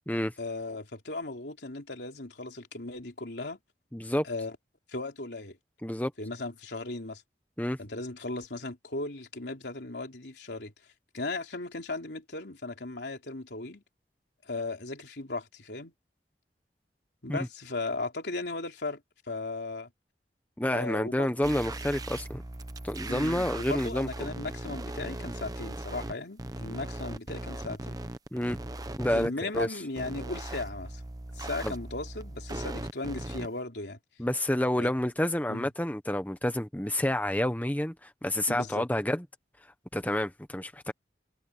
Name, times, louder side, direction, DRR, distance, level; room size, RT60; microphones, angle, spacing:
voice 1, 0.4-3.6 4.2-4.6 4.9-5.6 6.2-7.2 7.8-10.7 11.1-13.8 14.5-15.9 17.2-19.0 19.3-19.9 20.7-21.6 23.1-27.9 29.1-31.0 31.4-34.0 34.8-34.9 35.5-35.7 38.5-38.9, left 2 dB, 75° left, 3.4 m, -37 dB
voice 2, 3.9-4.2 5.8-6.1 7.6-7.8 17.3-17.4 20.6-22.4 22.8-24.1 28.3-28.6 29.0-29.7 31.6-31.7 34.2-39.2 39.9-40.9, left 1 dB, 10° left, 1.0 m, -29 dB
sound 1, 21.4-26.1 26.4-29.3 29.5-29.7 30.0-33.5, right 1 dB, 20° right, 0.9 m, -38 dB
head